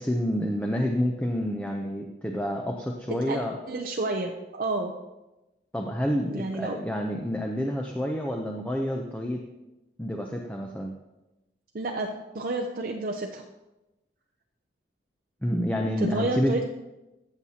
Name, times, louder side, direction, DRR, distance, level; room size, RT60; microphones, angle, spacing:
voice 1, 0.0-3.6 5.7-9.4 10.0-11.0 15.4-16.5, equal, 10° left, 1 dB, 0.5 m, -28 dB
voice 2, 3.1-3.4 3.7-4.9 6.3-6.8 11.7-13.4 16.0-16.6, right 2 dB, 50° right, 1 dB, 0.5 m, -30 dB
14.5 x 7.2 x 2.8 m, 1.0 s
head